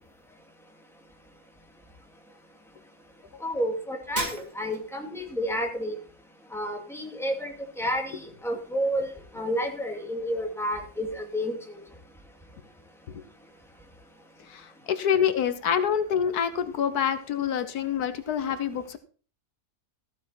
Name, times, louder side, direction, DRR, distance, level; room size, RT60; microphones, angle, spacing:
voice 1, 3.4-6.0 6.5-11.8, equal, ahead, 1 dB, 2.4 m, -30 dB
Shatter, 4.2-5.0, right 2 dB, 30° right, 1.9 m, -34 dB
voice 2, 14.5-19.0, left 8 dB, 85° left, 10 dB, 1.5 m, -26 dB
14.5 x 7.7 x 4.4 m, 0.40 s
omnidirectional pair, 1.6 m